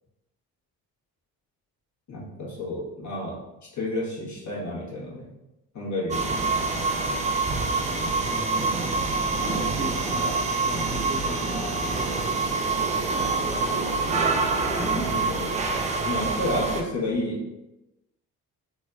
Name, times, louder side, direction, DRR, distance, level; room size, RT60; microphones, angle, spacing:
voice 1, 2.1-3.4 3.7-5.3 5.7-7.1 14.9-15.5 16.1-17.4, left 1 dB, 35° left, -5 dB, 1.3 m, -31 dB
sound 1, 6.1-16.8, right 3 dB, 15° right, 0.3 m, -26 dB
voice 2, 8.2-8.9 9.4-11.7, equal, 85° right, -9 dB, 1.2 m, -37 dB
4.1 x 2.2 x 2.4 m, 0.97 s
figure-of-eight pair, 40°, 50 cm